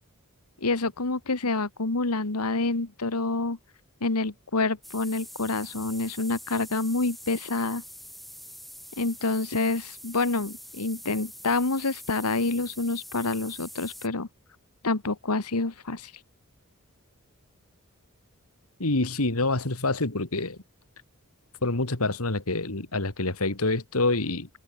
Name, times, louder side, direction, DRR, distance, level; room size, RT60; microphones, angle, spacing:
voice 1, 0.6-3.6 4.0-7.8 9.0-14.3 14.8-16.1, left 3 dB, 90° left, 1.7 m, -27 dB
sound 1, 4.8-14.1, equal, ahead, 3.9 m, -45 dB
voice 2, 18.8-20.6 21.6-24.5, left 2 dB, 70° left, 2.4 m, -26 dB
head